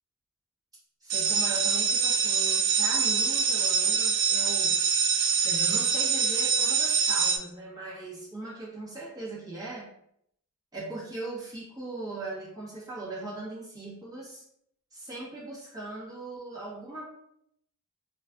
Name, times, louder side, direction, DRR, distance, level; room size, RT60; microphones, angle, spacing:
voice 1, 1.0-4.8 5.4-9.9 10.7-14.4 14.9-17.0, right 2 dB, 20° right, -7 dB, 1.1 m, -39 dB
sound 1, 1.1-7.4, right 6 dB, 55° right, 0.4 m, -25 dB
4.1 x 2.3 x 2.4 m, 0.71 s
head